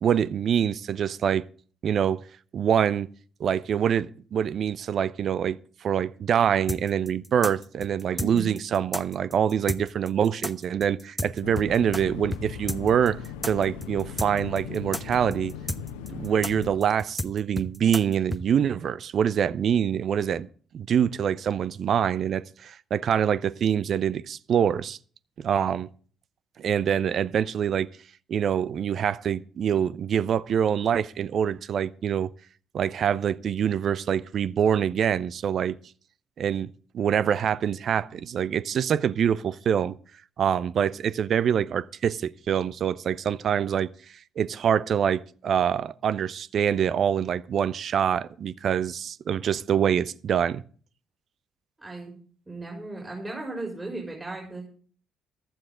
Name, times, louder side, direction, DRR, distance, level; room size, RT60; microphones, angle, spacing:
voice 1, 0.0-1.4 1.8-2.2 2.5-3.1 3.4-13.2 13.5-15.5 16.1-20.5 20.7-25.0 25.4-25.9 26.6-27.9 28.3-32.3 32.7-35.8 36.4-40.0 40.4-43.9 44.4-50.6, right 8 dB, 50° right, 0.5 m, -25 dB
sound 1, 6.7-12.0 12.3-12.4 12.7-18.4, left 1 dB, 5° left, 0.9 m, -32 dB
voice 2, 8.1-8.5 51.8-52.1 52.5-54.7, right 2 dB, 20° right, 4.5 m, -36 dB
sound 2, 11.4-16.7, left 7 dB, 70° left, 1.1 m, -38 dB
15.5 x 12.0 x 3.8 m
figure-of-eight pair, 45°, 0 cm